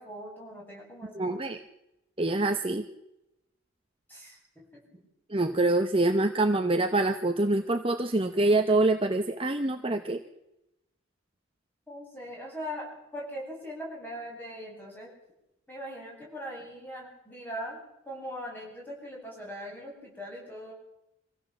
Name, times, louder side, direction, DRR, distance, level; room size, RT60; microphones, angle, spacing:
voice 1, 0.0-1.4 4.1-5.0 11.9-15.1 15.7-20.7, equal, 10° left, -3 dB, 7.9 m, -41 dB
voice 2, 1.2-1.6 2.2-2.8 5.3-10.2, right 2 dB, 25° right, 6 dB, 1.0 m, -25 dB
25.0 x 16.0 x 7.3 m, 0.87 s
head